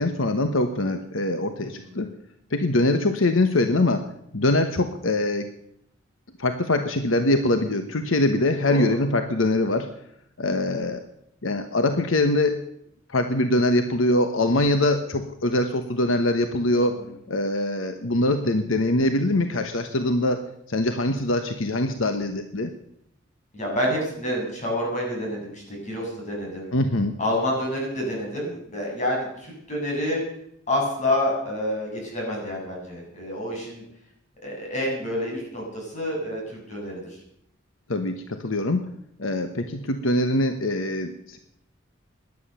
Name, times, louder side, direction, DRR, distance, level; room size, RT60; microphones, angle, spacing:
voice 1, 0.0-2.1 2.5-4.1 4.3-5.5 6.4-9.9 10.4-11.0 11.4-12.6 13.1-17.0 17.3-20.4 20.7-22.7 26.7-27.2 37.9-38.8 39.2-41.4, left 1 dB, 80° left, 7 dB, 1.2 m, -23 dB
voice 2, 8.6-9.0 23.5-26.7 27.2-30.2 30.7-33.8 34.4-37.0, left 1 dB, 40° left, -1 dB, 7.5 m, -28 dB
17.5 x 11.0 x 6.9 m, 0.74 s
head